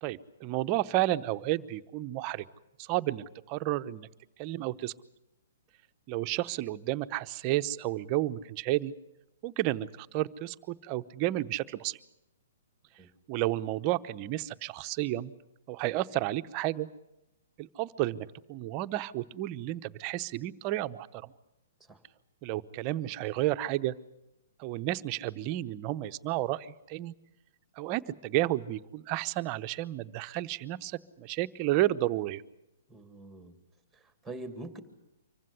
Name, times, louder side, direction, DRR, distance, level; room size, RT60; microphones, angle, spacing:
voice 1, 0.0-2.4 2.8-4.1 4.4-4.9 6.1-8.9 9.4-12.0 13.3-15.3 15.7-16.9 17.6-21.3 22.4-23.9 24.6-27.1 27.8-32.4, right 15 dB, 35° right, 11 dB, 0.8 m, -31 dB
voice 2, 32.9-33.6 33.9-34.8, right 2 dB, 5° right, 8 dB, 2.3 m, -44 dB
25.0 x 15.5 x 9.8 m, 0.92 s
hypercardioid pair, 145°, 0 cm